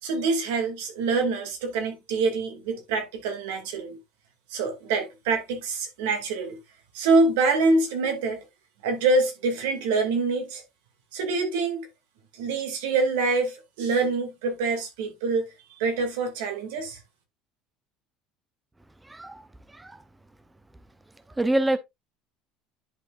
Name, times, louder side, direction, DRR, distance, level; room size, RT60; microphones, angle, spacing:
voice 1, 0.0-4.0 4.5-6.6 6.9-8.4 8.8-10.6 11.1-11.9 12.3-17.0, right 3 dB, 85° right, 2.5 m, -25 dB
voice 2, 19.0-20.0 21.4-21.8, right 1 dB, 10° right, 0.8 m, -27 dB
10.5 x 5.0 x 2.6 m
supercardioid pair, 105°, 0 cm